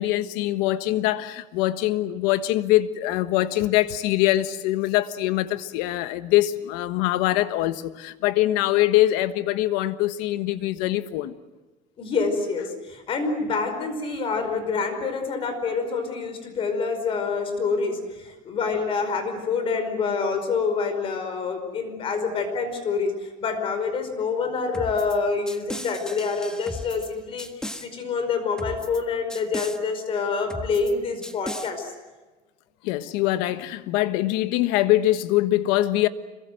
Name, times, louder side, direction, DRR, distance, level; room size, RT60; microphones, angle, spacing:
voice 1, 0.0-11.3 32.8-36.1, left 15 dB, 85° left, 1.4 m, -23 dB
voice 2, 12.0-27.5 27.8-31.9, left 4 dB, 35° left, 5.0 m, -27 dB
sound 1, 24.7-25.2 25.5-27.1 27.4-27.9 28.6-29.0 29.3-29.8 30.5-30.9 31.2-31.7, left 1 dB, 5° left, 1.5 m, -36 dB
26.5 x 23.0 x 7.8 m
cardioid pair, 150°, 15 cm